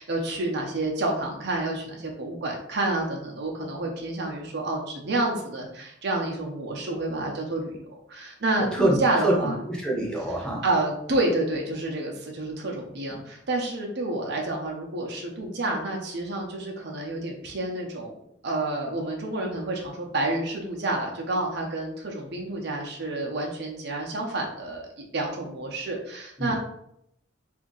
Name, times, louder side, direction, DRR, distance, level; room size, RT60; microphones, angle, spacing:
voice 1, 0.0-9.6 10.6-26.5, right 2 dB, 60° right, 0 dB, 0.6 m, -29 dB
voice 2, 9.2-10.6 26.4-26.5, right 1 dB, 5° left, -3 dB, 0.8 m, -25 dB
2.7 x 2.5 x 3.8 m, 0.75 s
head